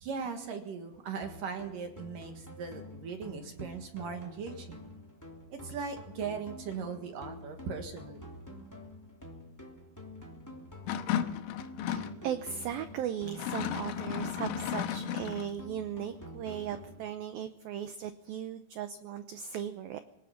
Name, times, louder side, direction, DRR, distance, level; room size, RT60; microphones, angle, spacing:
voice 1, 0.0-4.9 5.5-8.4, right 5 dB, 60° right, 5 dB, 2.6 m, -39 dB
sound 1, 1.2-17.2, left 1 dB, 5° left, 1.8 m, -48 dB
sound 2, 10.9-12.2 13.3-15.5, left 10 dB, 85° left, 3.5 m, -34 dB
voice 2, 11.9-20.0, right 9 dB, 85° right, 9 dB, 2.0 m, -37 dB
24.0 x 18.5 x 5.8 m, 0.82 s
omnidirectional pair, 5.4 m